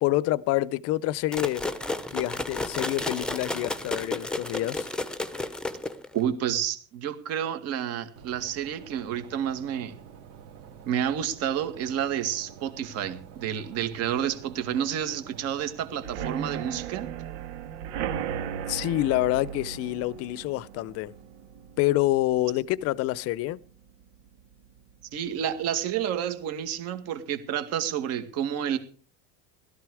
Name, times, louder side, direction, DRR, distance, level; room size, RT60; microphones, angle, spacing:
voice 1, 0.0-1.7 2.1-4.9 18.7-21.1 21.8-23.6, left 16 dB, 45° left, 0.7 m, -27 dB
sound 1, 1.3-6.2, left 2 dB, ahead, 0.9 m, -32 dB
voice 2, 6.1-10.0 10.9-17.1 25.1-28.8, right 9 dB, 45° right, 2.1 m, -30 dB
sound 2, 8.2-16.2, right 8 dB, 65° right, 2.7 m, -48 dB
sound 3, 16.0-23.6 24.0-24.4 24.7-24.8 25.1-25.2, right 8 dB, 85° right, 1.9 m, -36 dB
17.0 x 13.5 x 4.9 m
cardioid pair, 160°, 34 cm